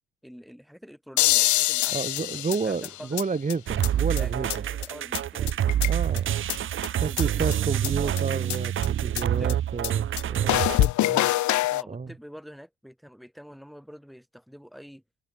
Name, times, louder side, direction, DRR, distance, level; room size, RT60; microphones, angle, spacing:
voice 1, 0.2-3.2 4.1-5.7 7.1-8.2 9.2-9.6 11.7-15.0, equal, ahead, 5.5 m, -46 dB
sound 1, 1.2-3.2 3.5-3.6 3.8-3.9 4.2-4.3 4.5-4.6 4.8-4.9 5.1-5.2 5.5-6.2 6.5-6.6 6.8-6.9 7.2-7.3 7.5-7.6 7.8-7.9 8.2-8.3 8.5-8.6 8.8-8.9 9.2-9.3 9.5-9.6 9.8-9.9 10.2-10.3 10.5-11.8, left 16 dB, 70° left, 0.6 m, -24 dB
voice 2, 1.9-4.6 5.8-6.4 7.0-11.3 11.9-12.1, right 4 dB, 25° right, 1.8 m, -31 dB
sound 2, 3.7-10.9, right 11 dB, 45° right, 0.5 m, -27 dB
cardioid pair, 90°, 30 cm